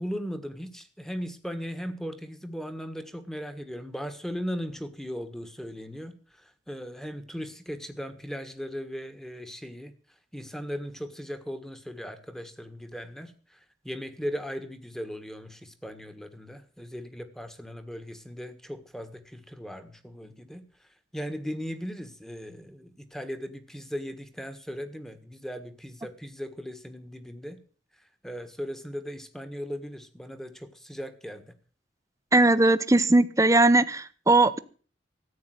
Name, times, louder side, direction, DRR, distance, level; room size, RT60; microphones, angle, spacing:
voice 1, 0.0-9.9 10.3-20.6 21.1-27.6 28.2-31.4, equal, ahead, 10 dB, 1.5 m, -38 dB
voice 2, 32.3-34.6, right 2 dB, 15° right, 13 dB, 0.8 m, -19 dB
14.5 x 8.8 x 7.9 m, 0.41 s
head